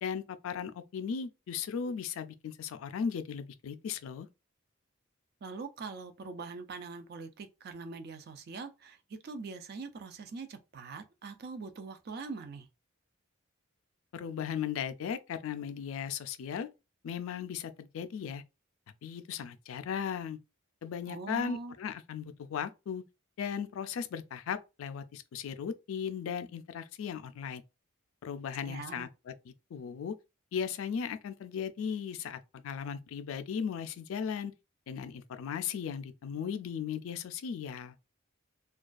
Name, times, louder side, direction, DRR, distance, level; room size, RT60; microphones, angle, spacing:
voice 1, 0.0-4.3 14.1-16.7 17.0-18.4 19.0-20.4 20.8-23.0 23.4-27.6 28.2-29.3 29.7-30.1 30.5-34.5 34.9-38.0, left 7 dB, 75° left, 0.3 m, -37 dB
voice 2, 5.4-12.7 21.1-21.7 28.7-29.1, right 4 dB, 50° right, 0.4 m, -43 dB
2.3 x 2.2 x 2.4 m
head